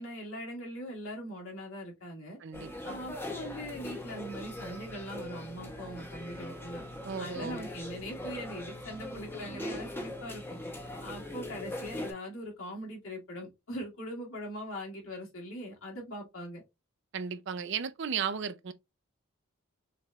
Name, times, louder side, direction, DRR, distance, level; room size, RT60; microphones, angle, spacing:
voice 1, 0.0-2.4 2.9-6.8 7.2-10.4 11.0-16.6, equal, 80° left, 2.4 m, -41 dB
voice 2, 2.4-3.0 7.0-7.6 17.1-18.7, right 7 dB, 60° right, 0.5 m, -35 dB
sound 1, 2.5-12.1, left 1 dB, 10° left, 0.8 m, -41 dB
6.6 x 3.1 x 2.4 m
head